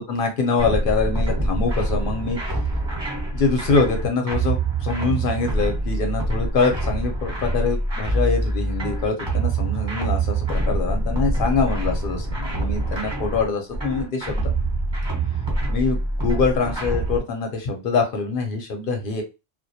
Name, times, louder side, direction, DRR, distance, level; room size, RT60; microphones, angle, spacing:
voice 1, 0.0-2.6 3.3-14.5 15.7-19.2, left 4 dB, 60° left, 3 dB, 0.6 m, -24 dB
sound 1, 0.6-17.2, right 2 dB, 25° right, 0.9 m, -25 dB
2.2 x 2.2 x 2.6 m, 0.27 s
omnidirectional pair, 1.3 m